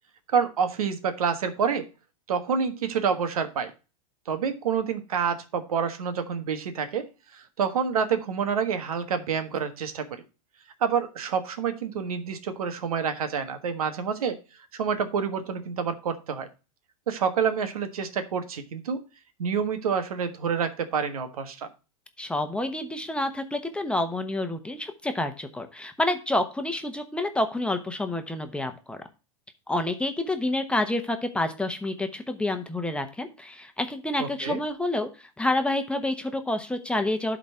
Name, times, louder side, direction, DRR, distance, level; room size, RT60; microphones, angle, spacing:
voice 1, 0.3-1.8 2.3-3.7 4.3-7.1 7.3-10.2 10.8-14.4 14.7-16.5 17.1-19.0 19.4-21.7 34.2-34.6, right 6 dB, 85° right, 8 dB, 1.4 m, -28 dB
voice 2, 22.2-29.0 29.7-37.4, left 1 dB, 5° left, 6 dB, 1.0 m, -28 dB
12.0 x 4.0 x 4.3 m, 0.31 s
hypercardioid pair, 115°, 18 cm